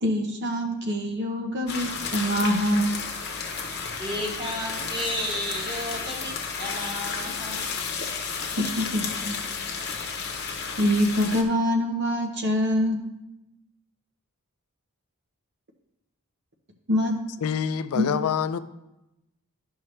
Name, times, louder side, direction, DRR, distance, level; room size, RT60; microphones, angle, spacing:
voice 1, 0.0-3.0 8.6-9.4 10.8-13.0 16.9-17.2 17.9-18.0, equal, 50° right, 0.9 m, -25 dB
sound 1, 1.7-11.4, left 5 dB, 45° left, 1.0 m, -32 dB
voice 2, 4.0-7.6 8.4-8.5 9.1-9.2, equal, 20° right, 1.4 m, -33 dB
voice 3, 17.4-18.6, left 7 dB, 75° left, 0.4 m, -26 dB
12.0 x 5.6 x 3.2 m
head